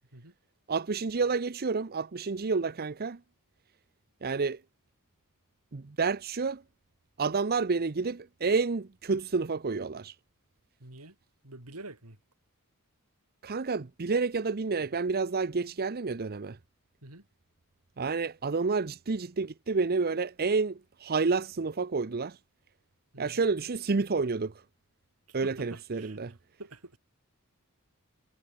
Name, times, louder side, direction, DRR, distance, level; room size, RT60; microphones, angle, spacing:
voice 1, 0.7-3.2 4.2-4.6 5.7-6.6 7.2-10.1 13.4-16.6 18.0-22.4 23.2-24.5 25.3-26.3, right 4 dB, 45° right, 0.7 m, -29 dB
voice 2, 10.8-11.2 11.4-12.2 17.0-17.3 23.1-23.4 25.3-26.2 26.6-27.0, right 2 dB, 90° right, 5.0 m, -47 dB
head